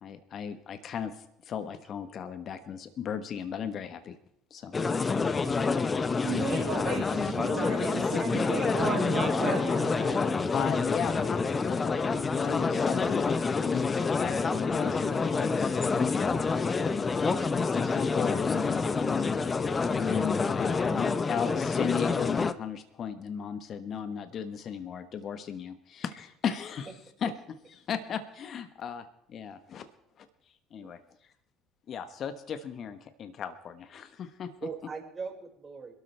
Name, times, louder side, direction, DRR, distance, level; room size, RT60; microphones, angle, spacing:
voice 1, 0.0-4.2 4.5-4.7 6.4-6.5 10.5-13.3 13.6-16.3 17.5-19.4 19.9-26.9 27.2-27.3 27.9-29.9 30.2-30.3 30.7-31.0 31.9-34.5, left 7 dB, 50° left, 9 dB, 1.3 m, -36 dB
sound 1, 4.7-22.5, left 4 dB, 30° left, 0.9 m, -27 dB
voice 2, 5.4-6.0 30.8-30.9 34.6-35.9, right 5 dB, 35° right, 1 dB, 5.4 m, -41 dB
voice 3, 6.2-10.3, right 5 dB, 55° right, -5 dB, 5.2 m, -34 dB
26.5 x 13.0 x 3.4 m, 0.75 s
hypercardioid pair, 60°, 0 cm